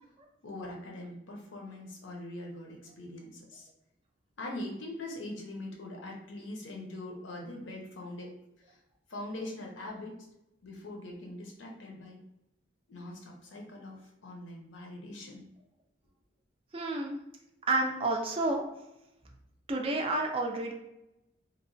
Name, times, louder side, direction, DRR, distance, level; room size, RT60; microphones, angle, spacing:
voice 1, 0.4-3.7 4.4-8.3 8.7-8.8 9.1-10.1 10.6-12.2 12.9-15.4, left 1 dB, 80° left, 0 dB, 0.6 m, -42 dB
voice 2, 16.7-17.2 17.7-18.6 19.7-20.7, right 2 dB, 30° right, 2 dB, 0.3 m, -30 dB
2.9 x 2.1 x 2.6 m, 0.87 s
head